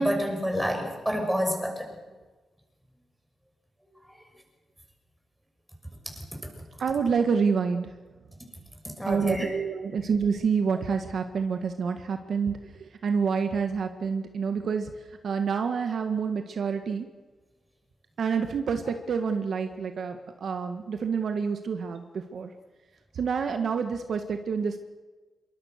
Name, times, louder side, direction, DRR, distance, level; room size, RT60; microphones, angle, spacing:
voice 1, 0.0-1.9 9.0-9.5, equal, 5° right, 2 dB, 6.5 m, -27 dB
voice 2, 6.8-7.9 9.1-14.9 15.2-17.1 18.2-22.5 23.1-24.8, right 6 dB, 60° right, 6 dB, 1.6 m, -28 dB
27.0 x 23.5 x 6.6 m, 1.3 s
wide cardioid pair, 115°, 0 cm